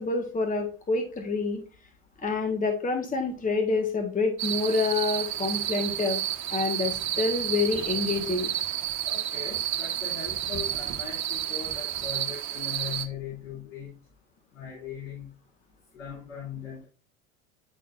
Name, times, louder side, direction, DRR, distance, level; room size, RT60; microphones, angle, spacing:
voice 1, 0.0-1.6 2.2-6.2 6.5-8.5, left 3 dB, 20° left, 4 dB, 1.5 m, -27 dB
sound 1, 4.4-13.1, right 11 dB, 45° right, 1.4 m, -31 dB
voice 2, 9.0-13.9 14.5-15.3 15.9-16.9, left 7 dB, 85° left, -6 dB, 3.5 m, -39 dB
10.5 x 4.1 x 2.5 m, 0.36 s
hypercardioid pair, 80°, 38 cm